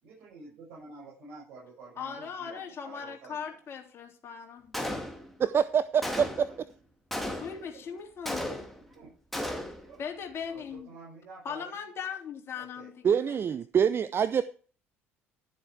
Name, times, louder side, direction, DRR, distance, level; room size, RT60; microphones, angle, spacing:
voice 1, 0.0-3.6 6.4-6.5 7.6-7.7 8.9-9.1 9.8-10.0 10.4-11.8 12.5-12.9, right 3 dB, 55° right, -6 dB, 6.6 m, -49 dB
voice 2, 2.0-4.8 7.4-8.7 10.0-10.9 11.5-13.4, left 7 dB, 40° left, 1 dB, 3.5 m, -39 dB
Gunshot gunfire, 4.7-5.5 6.0-6.6 7.1-7.7 8.3-8.9 9.3-9.9, left 1 dB, ahead, 2.5 m, -35 dB
voice 3, 5.4-6.5 13.0-14.4, right 7 dB, 35° right, 14 dB, 0.6 m, -25 dB
12.5 x 7.6 x 4.8 m, 0.40 s
figure-of-eight pair, 55°, 7 cm